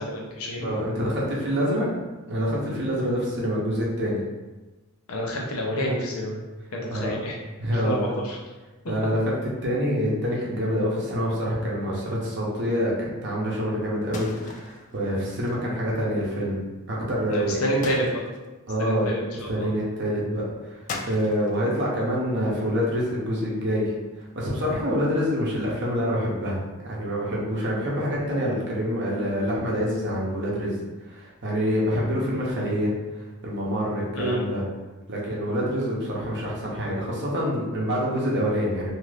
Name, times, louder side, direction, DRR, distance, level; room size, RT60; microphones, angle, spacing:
voice 1, 0.0-0.7 5.1-6.4 6.7-7.3 7.8-8.4 17.3-18.2 18.8-19.5 34.1-34.4, equal, 75° left, -1 dB, 0.7 m, -28 dB
voice 2, 0.6-1.9 2.2-4.2 6.9-7.2 7.6-8.1 8.9-16.6 16.9-17.6 18.7-19.1 19.5-20.8 21.1-23.9 24.3-26.6 26.8-30.7 31.1-32.9 33.4-34.6 35.1-38.9, equal, 55° right, -4 dB, 0.8 m, -26 dB
sound 1, 14.1-15.6 16.9-17.3 17.8-18.6 20.9-22.2 22.6-23.3 24.1-24.4, left 3 dB, 35° left, 0.3 m, -39 dB
2.8 x 2.5 x 3.2 m, 1.2 s
head